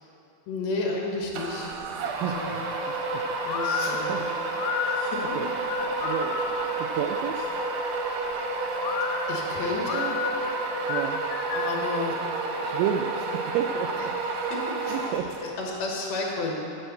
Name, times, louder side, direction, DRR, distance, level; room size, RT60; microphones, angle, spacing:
voice 1, 0.5-1.7 2.2-2.5 3.4-4.3 4.9-5.3 9.0-10.1 11.5-12.2 12.6-12.7 14.0-14.1 14.4-15.1 15.4-16.6, left 3 dB, 60° left, -1 dB, 2.0 m, -32 dB
sound 1, 1.3-15.6, right 3 dB, 75° right, 2.0 m, -30 dB
voice 2, 2.1-3.2 3.8-4.2 4.8-5.1 5.4-5.5 5.8-7.5 10.9-11.2 12.6-14.1 14.9-15.3, right 8 dB, 90° right, 4 dB, 2.0 m, -32 dB
sound 2, 3.5-6.8 8.8-11.9, left 7 dB, 80° left, 2.3 m, -32 dB
8.8 x 6.6 x 8.0 m, 2.6 s
omnidirectional pair, 4.6 m